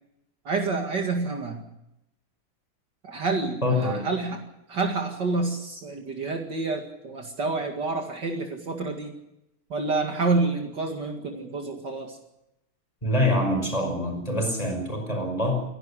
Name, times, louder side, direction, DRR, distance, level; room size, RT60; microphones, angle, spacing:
voice 1, 0.4-1.6 3.0-9.1 9.7-12.2, right 3 dB, 55° right, 3 dB, 2.7 m, -28 dB
voice 2, 3.6-4.0 13.0-15.6, left 1 dB, 15° left, 2 dB, 5.5 m, -25 dB
27.5 x 11.5 x 9.9 m, 0.86 s
omnidirectional pair, 2.3 m